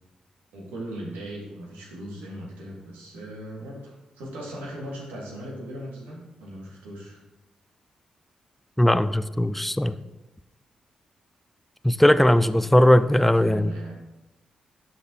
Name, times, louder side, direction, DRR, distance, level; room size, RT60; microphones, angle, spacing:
voice 1, 0.5-7.2 12.4-13.9, right 1 dB, 85° right, 1.7 m, -38 dB
voice 2, 8.8-9.9 11.8-13.7, left 1 dB, 5° left, 0.4 m, -19 dB
12.0 x 4.1 x 2.9 m
hypercardioid pair, 40°, 3 cm